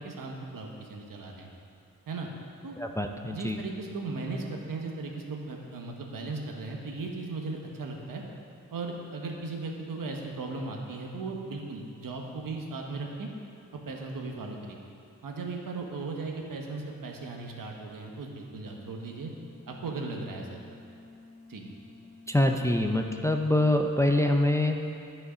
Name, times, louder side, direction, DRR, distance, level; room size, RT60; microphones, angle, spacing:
voice 1, 0.0-1.5 2.1-2.3 2.6-2.8 3.3-8.2 8.7-13.3 13.9-14.8 15.2-19.3 19.7-20.8 21.5-21.7, right 3 dB, 75° right, 1 dB, 1.1 m, -37 dB
voice 2, 2.8-3.6 22.3-24.9, left 1 dB, 10° left, 3 dB, 0.4 m, -25 dB
sound 1, 18.8-24.0, left 3 dB, 35° left, 1.2 m, -52 dB
11.0 x 5.6 x 5.0 m, 2.5 s
wide cardioid pair, 110°, 34 cm